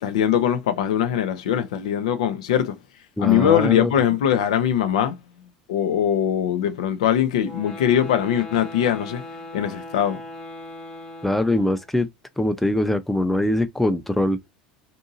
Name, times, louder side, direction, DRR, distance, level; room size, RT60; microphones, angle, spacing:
voice 1, 0.0-2.8 3.2-5.2 5.7-9.2 9.5-10.2, left 9 dB, 70° left, 0.5 m, -21 dB
voice 2, 3.2-3.9 11.2-12.1 12.4-14.4, left 1 dB, 5° left, 0.5 m, -22 dB
sound 1, 7.4-12.0, left 1 dB, 25° left, 1.0 m, -39 dB
2.7 x 2.6 x 2.5 m
hypercardioid pair, 75°, 4 cm